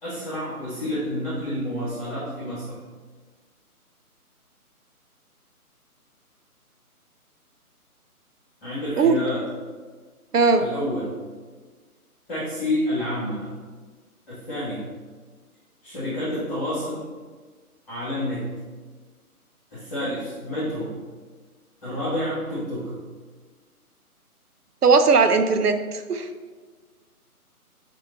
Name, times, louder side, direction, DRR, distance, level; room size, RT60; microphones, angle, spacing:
voice 1, 0.0-2.8 8.6-9.5 10.6-11.1 12.3-13.5 14.3-14.8 15.8-17.1 17.9-18.5 19.7-20.9 21.8-22.9, left 1 dB, 5° left, -13 dB, 2.0 m, -29 dB
voice 2, 10.3-10.6 24.8-26.3, right 4 dB, 85° right, 7 dB, 0.8 m, -18 dB
10.5 x 3.6 x 2.9 m, 1.4 s
hypercardioid pair, 165°, 45 cm